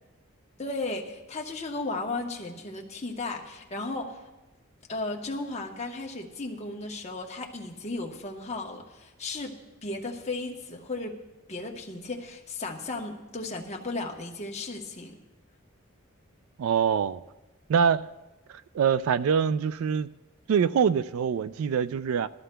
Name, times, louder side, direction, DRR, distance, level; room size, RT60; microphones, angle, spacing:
voice 1, 0.6-4.2 4.9-11.2 11.5-15.2, left 2 dB, 30° left, 1 dB, 1.0 m, -35 dB
voice 2, 16.6-17.2 17.7-18.1 18.7-20.1 20.5-22.3, right 7 dB, 80° right, 15 dB, 0.3 m, -24 dB
19.0 x 13.0 x 2.2 m, 1.0 s
head